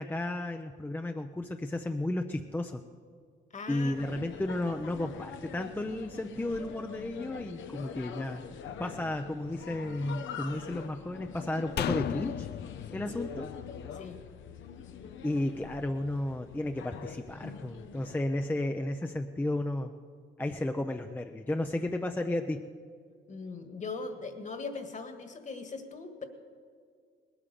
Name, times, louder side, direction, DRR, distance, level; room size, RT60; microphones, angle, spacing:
voice 1, 0.0-2.8 3.7-8.4 8.8-12.5 12.9-13.5 15.2-19.9 20.4-22.6, left 1 dB, 10° left, 5 dB, 0.6 m, -33 dB
voice 2, 3.5-4.0 13.1-13.2 13.9-14.2 23.3-26.2, left 4 dB, 40° left, 7 dB, 1.7 m, -40 dB
sound 1, 3.9-18.2, left 7 dB, 75° left, 0.9 m, -44 dB
sound 2, 11.8-15.1 15.4-15.5, left 10 dB, 55° left, 0.4 m, -36 dB
19.0 x 8.9 x 6.9 m, 2.1 s
cardioid pair, 90°, 20 cm